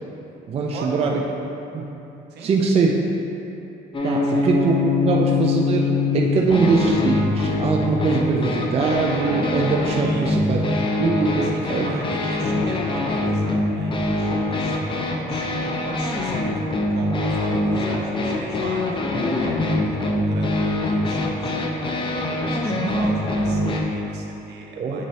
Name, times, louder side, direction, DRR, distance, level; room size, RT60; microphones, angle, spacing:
voice 1, 0.5-1.2 1.7-1.9 2.4-3.0 4.0-10.6 11.0-11.9 22.7-22.9 24.8-25.0, right 4 dB, 35° right, -1 dB, 0.5 m, -22 dB
sound 1, 3.9-23.8, left 2 dB, 30° left, 0.6 m, -23 dB
voice 2, 10.0-10.4 11.4-25.0, right 3 dB, 70° right, 0 dB, 0.9 m, -39 dB
8.2 x 4.0 x 3.1 m, 2.9 s
cardioid pair, 120°, 18 cm